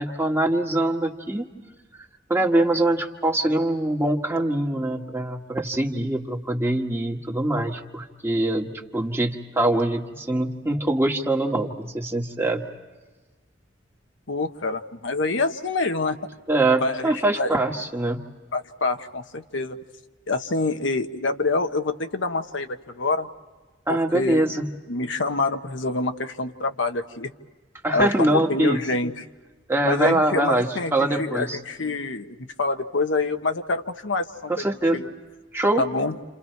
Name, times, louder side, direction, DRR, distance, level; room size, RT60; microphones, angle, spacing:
voice 1, 0.0-1.5 2.3-12.6 16.5-18.2 23.9-24.7 27.8-28.8 29.7-31.6 34.5-35.0 35.5-35.8, right 1 dB, 15° right, 2 dB, 1.7 m, -23 dB
voice 2, 14.3-16.2 16.8-17.5 18.5-19.8 20.3-23.3 23.9-24.5 24.9-27.3 27.9-29.2 29.8-34.6 34.9-35.1 35.8-36.1, left 3 dB, 85° left, 6 dB, 1.3 m, -26 dB
30.0 x 29.0 x 4.6 m, 1.3 s
head